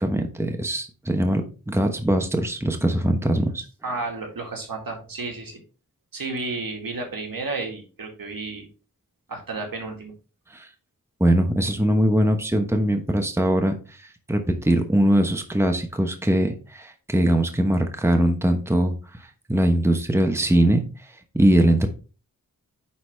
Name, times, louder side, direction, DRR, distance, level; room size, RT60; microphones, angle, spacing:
voice 1, 0.0-3.6 10.5-10.7 11.2-21.1 21.3-21.9, right 1 dB, 5° right, 5 dB, 1.1 m, -21 dB
voice 2, 3.8-5.6 6.1-8.7 9.3-10.1, right 3 dB, 75° right, 1 dB, 2.1 m, -32 dB
9.6 x 4.1 x 3.3 m, 0.35 s
wide cardioid pair, 75°, 35 cm